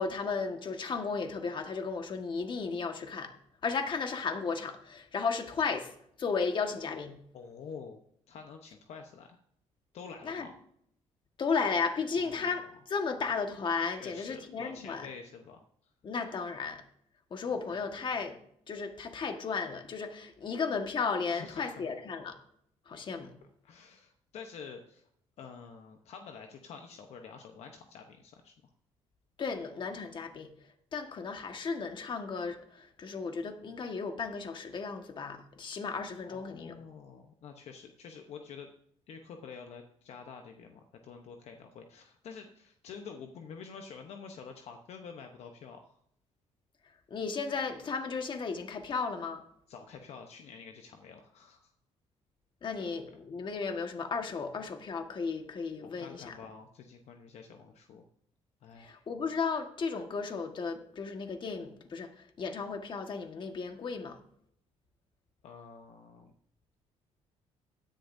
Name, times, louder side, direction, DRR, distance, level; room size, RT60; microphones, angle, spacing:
voice 1, 0.0-3.3 3.6-5.9 6.2-7.2 10.2-10.5 11.4-15.1 16.0-16.8 17.3-18.3 18.7-22.4 22.9-23.3 29.4-30.5 30.9-36.7 47.1-49.4 52.6-56.3 58.8-64.2, left 5 dB, 45° left, 5 dB, 1.6 m, -34 dB
voice 2, 7.3-8.0 8.3-9.4 9.9-10.6 12.1-12.6 14.0-15.9 21.3-21.9 23.6-25.1 25.4-28.5 36.2-38.7 39.1-45.9 49.7-51.7 52.8-52.9 55.8-58.0 58.6-59.0 65.4-66.3, left 6 dB, 65° left, 4 dB, 1.0 m, -48 dB
16.0 x 10.5 x 2.7 m, 0.70 s
cardioid pair, 105°, 12 cm